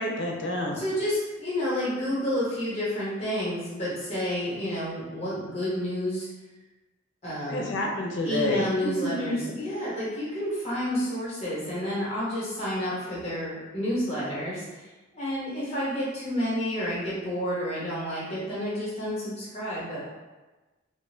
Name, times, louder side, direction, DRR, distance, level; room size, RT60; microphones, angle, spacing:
voice 1, 0.0-0.8 7.5-8.7 9.3-9.5, left 1 dB, 60° left, -1 dB, 0.6 m, -29 dB
voice 2, 0.7-6.3 7.2-7.8 8.2-20.1, equal, 30° left, -8 dB, 0.9 m, -30 dB
3.1 x 2.2 x 3.1 m, 1.2 s
head